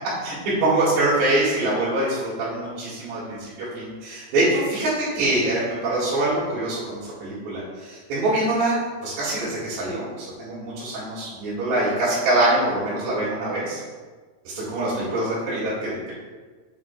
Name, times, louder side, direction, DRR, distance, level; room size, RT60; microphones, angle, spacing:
voice 1, 0.0-13.8 14.6-16.1, right 1 dB, 70° right, -10 dB, 3.9 m, -24 dB
8.7 x 7.8 x 2.3 m, 1.4 s
omnidirectional pair, 5.2 m